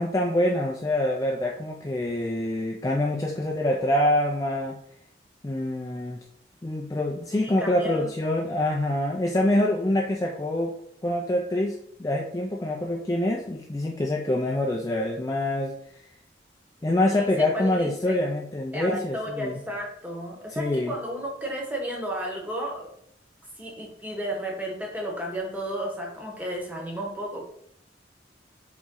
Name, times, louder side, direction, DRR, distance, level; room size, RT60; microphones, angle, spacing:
voice 1, 0.0-4.8 5.4-6.2 6.6-10.8 11.0-16.0 16.8-19.6 20.5-21.0, left 1 dB, 20° left, -1 dB, 0.3 m, -26 dB
voice 2, 7.3-8.1 9.8-9.9 17.1-18.2 18.7-22.9 23.6-27.4, equal, 10° right, -1 dB, 0.9 m, -33 dB
4.1 x 3.1 x 3.7 m, 0.66 s
head